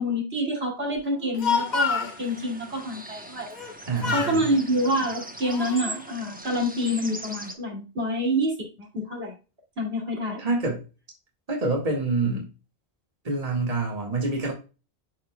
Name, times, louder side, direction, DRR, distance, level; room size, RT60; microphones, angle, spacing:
voice 1, 0.0-3.5 4.1-9.3 9.8-10.4, equal, 70° right, -1 dB, 2.9 m, -27 dB
Speech, 1.1-2.2 3.5-3.8 4.0-4.4 5.1-5.9, left 5 dB, 45° left, 1.0 m, -28 dB
sound 1, 1.4-7.5, right 2 dB, 10° right, 0.9 m, -41 dB
voice 2, 3.9-4.5 10.4-10.8 11.5-12.5 13.2-14.5, right 3 dB, 35° right, -1 dB, 1.9 m, -26 dB
12.0 x 4.2 x 2.2 m, 0.31 s
omnidirectional pair, 1.1 m